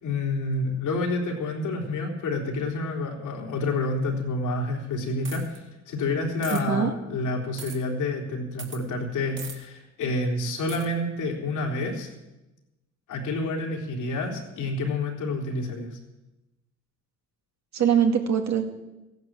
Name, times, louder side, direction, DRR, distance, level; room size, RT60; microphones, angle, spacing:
voice 1, 0.0-5.6 5.9-12.1 13.1-16.0, left 2 dB, 85° left, 0 dB, 3.8 m, -28 dB
sound 1, 5.2-5.6 6.4-6.6 7.6-7.8 8.6-8.8 9.4-9.6 10.7-10.9, right 5 dB, 40° right, 2.4 m, -39 dB
voice 2, 6.5-6.9 17.7-18.7, right 8 dB, 65° right, 4 dB, 2.2 m, -23 dB
15.5 x 11.0 x 7.7 m, 1.0 s
cardioid pair, 90°, 30 cm